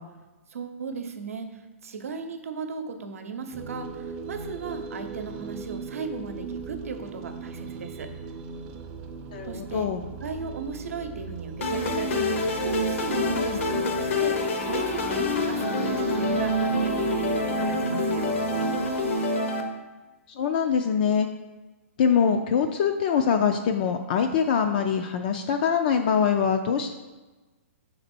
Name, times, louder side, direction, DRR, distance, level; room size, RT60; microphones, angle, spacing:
voice 1, 0.5-8.1 9.5-9.8 10.2-18.4, right 5 dB, 90° right, 7 dB, 0.7 m, -36 dB
sound 1, 3.5-19.1, right 5 dB, 25° right, 0.5 m, -39 dB
voice 2, 9.3-10.0 13.3-13.6 20.4-21.3 22.0-26.9, left 7 dB, 40° left, 5 dB, 0.3 m, -24 dB
sound 2, 11.6-19.6, left 1 dB, 65° left, 0.9 m, -26 dB
6.0 x 4.1 x 4.2 m, 1.2 s
hypercardioid pair, 160°, 7 cm